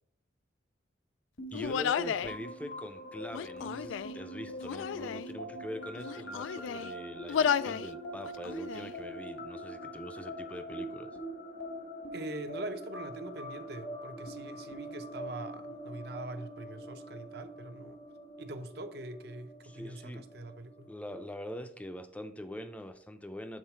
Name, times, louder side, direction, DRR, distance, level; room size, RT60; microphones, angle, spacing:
sound 1, 1.4-20.9, right 1 dB, 70° left, 1.4 m, -44 dB
Human voice, 1.5-2.4 3.3-4.2 4.6-5.3 6.0-6.9 7.3-7.9 8.2-8.9, left 8 dB, 90° left, 0.3 m, -32 dB
voice 1, 1.5-11.1 19.6-20.2 20.9-23.6, equal, 5° left, 0.5 m, -43 dB
voice 2, 12.1-18.0 18.4-20.9, right 2 dB, 60° right, 0.7 m, -43 dB
7.5 x 3.9 x 4.5 m
head